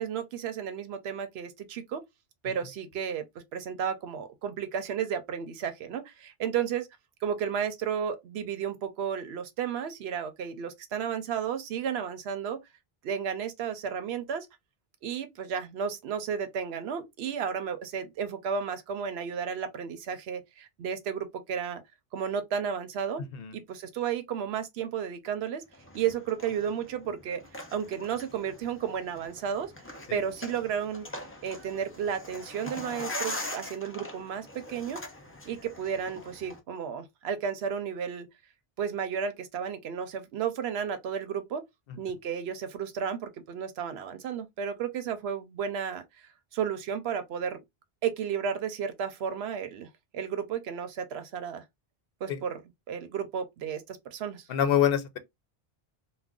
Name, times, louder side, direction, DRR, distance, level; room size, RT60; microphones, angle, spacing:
voice 1, 0.0-2.0 2.4-3.2 3.5-6.9 7.2-12.6 13.0-14.5 15.0-21.8 22.1-23.2 23.5-25.6 25.9-29.7 30.1-31.1 31.4-35.0 35.5-38.3 38.8-41.6 42.0-46.0 46.5-47.6 48.0-51.6 52.2-52.6 52.9-54.5, right 7 dB, 85° right, 0.9 m, -33 dB
sound 1, 25.7-36.6, left 1 dB, 20° left, 0.4 m, -42 dB
voice 2, 54.5-55.2, left 9 dB, 70° left, 0.8 m, -25 dB
2.4 x 2.2 x 3.5 m
omnidirectional pair, 1.1 m